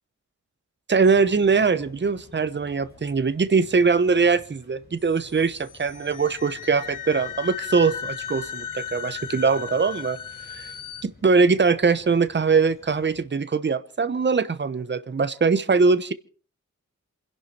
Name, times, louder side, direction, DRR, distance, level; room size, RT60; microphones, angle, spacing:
sound 1, 0.9-13.2, left 2 dB, 30° left, 7.1 m, -52 dB
voice 1, 0.9-10.2 10.5-10.7 11.0-16.1, right 4 dB, 35° right, 1.0 m, -22 dB
sound 2, 5.0-11.0, left 8 dB, 85° left, 0.9 m, -36 dB
28.0 x 11.0 x 4.4 m
wide cardioid pair, 125°, 31 cm